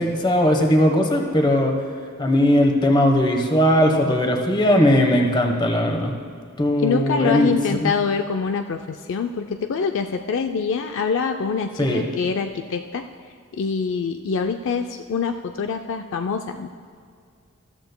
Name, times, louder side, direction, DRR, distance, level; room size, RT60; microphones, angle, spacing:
voice 1, 0.0-1.7 2.2-6.1 6.6-7.9 11.8-12.0, left 1 dB, 20° left, 3 dB, 1.1 m, -19 dB
voice 2, 6.8-13.1 13.5-16.7, left 5 dB, 60° left, 6 dB, 0.4 m, -25 dB
14.0 x 13.5 x 2.2 m, 2.3 s
head